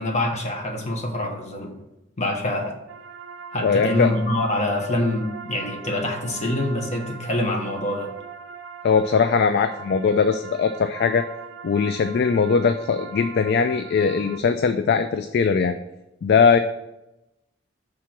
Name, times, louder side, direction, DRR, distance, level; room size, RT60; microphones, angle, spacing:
voice 1, 0.0-1.7 2.2-2.8 3.5-8.1, left 1 dB, 35° left, 2 dB, 1.1 m, -25 dB
sound 1, 2.9-14.4, right 6 dB, 80° right, 0.5 m, -39 dB
voice 2, 3.6-4.1 8.8-11.3 11.6-15.8 16.2-16.6, left 5 dB, 55° left, 9 dB, 0.3 m, -20 dB
5.8 x 3.7 x 6.0 m, 0.94 s
head